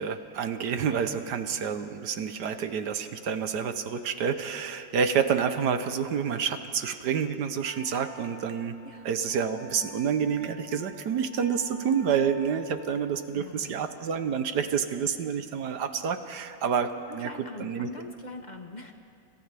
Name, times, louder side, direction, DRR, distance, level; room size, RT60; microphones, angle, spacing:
voice 1, 0.0-8.8 9.0-17.3 17.6-17.9, right 7 dB, 65° right, 9 dB, 1.3 m, -28 dB
Wind instrument woodwind instrument, 7.6-13.3, right 1 dB, 60° left, 2.3 m, -50 dB
voice 2, 13.3-13.7 17.1-18.9, left 2 dB, 35° left, 4 dB, 0.8 m, -43 dB
29.5 x 27.0 x 3.4 m, 2.5 s
omnidirectional pair, 2.1 m